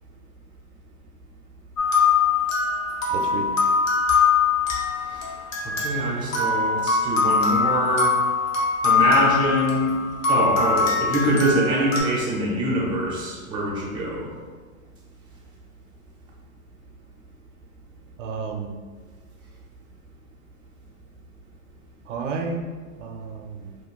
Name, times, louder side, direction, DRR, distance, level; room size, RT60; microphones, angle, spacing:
sound 1, 1.8-12.0, left 5 dB, 65° left, 1.0 m, -22 dB
voice 1, 3.1-3.5 18.2-18.8 22.1-22.7 23.0-23.7, right 4 dB, 60° right, 3 dB, 0.5 m, -31 dB
voice 2, 5.6-8.2 8.8-9.9 10.3-14.3, right 1 dB, 10° right, -4 dB, 0.4 m, -24 dB
2.5 x 2.2 x 3.7 m, 1.4 s
hypercardioid pair, 120°, 42 cm